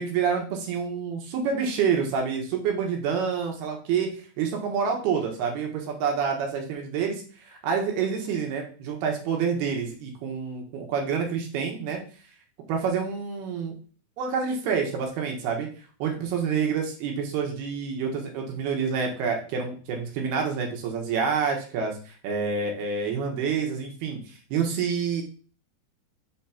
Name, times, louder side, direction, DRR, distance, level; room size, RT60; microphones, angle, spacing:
voice 1, 0.0-4.1 4.4-12.0 12.7-13.8 14.2-15.7 16.0-25.2, right 6 dB, 65° right, 2 dB, 3.0 m, -28 dB
7.0 x 4.1 x 5.8 m, 0.39 s
omnidirectional pair, 5.5 m